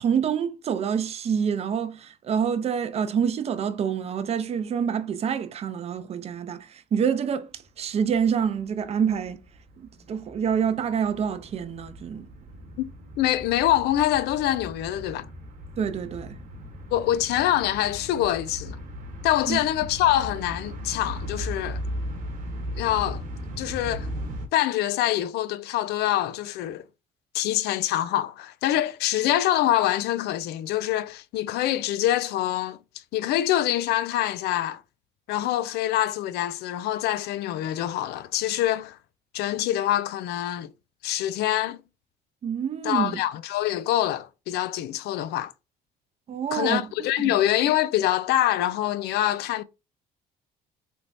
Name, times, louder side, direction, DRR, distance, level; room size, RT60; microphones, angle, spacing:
voice 1, 0.0-9.4 9.8-12.3 15.8-16.4 19.5-19.6 42.4-43.2 46.3-46.8 47.2-47.3, right 7 dB, 40° right, 0.5 m, -27 dB
sound 1, 7.6-7.7 8.1-24.5, equal, 55° right, 1.0 m, -37 dB
voice 2, 13.2-15.3 16.9-18.8 19.2-21.8 22.8-23.2 23.6-24.1 24.5-26.8 27.3-32.8 33.1-34.8 35.3-39.0 39.3-40.7 41.0-41.8 42.8-45.5 46.5-49.6, left 13 dB, 75° left, 0.4 m, -25 dB
3.4 x 3.0 x 2.5 m
cardioid pair, 110°, 17 cm